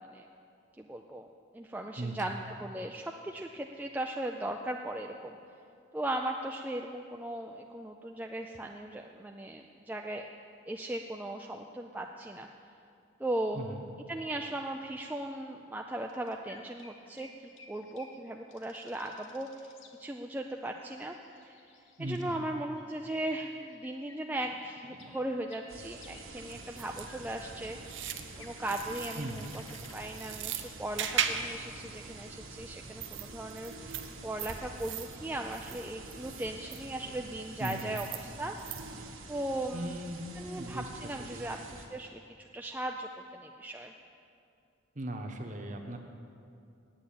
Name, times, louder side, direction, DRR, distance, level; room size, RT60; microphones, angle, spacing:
voice 1, 0.8-1.3 1.5-5.4 5.9-10.3 10.7-12.5 13.2-13.7 14.1-17.3 17.7-19.7 20.0-21.1 21.4-21.6 22.0-28.0 28.4-29.5 29.9-38.1 38.4-38.5 39.3-40.0 40.4-43.9, right 1 dB, 10° right, 2 dB, 0.3 m, -38 dB
voice 2, 2.0-2.3 13.5-13.8 22.0-22.4 24.9-25.2 29.1-29.5 37.6-37.9 39.7-40.2 40.5-40.9 41.2-41.6 44.9-46.0, right 1 dB, 40° right, 4 dB, 1.0 m, -39 dB
sound 1, 15.9-32.4, left 4 dB, 70° left, 1.0 m, -58 dB
sound 2, 25.7-41.9, right 3 dB, 90° right, 1.5 m, -48 dB
sound 3, 26.5-39.1, right 7 dB, 65° right, 0.7 m, -40 dB
9.0 x 8.6 x 8.6 m, 2.5 s
head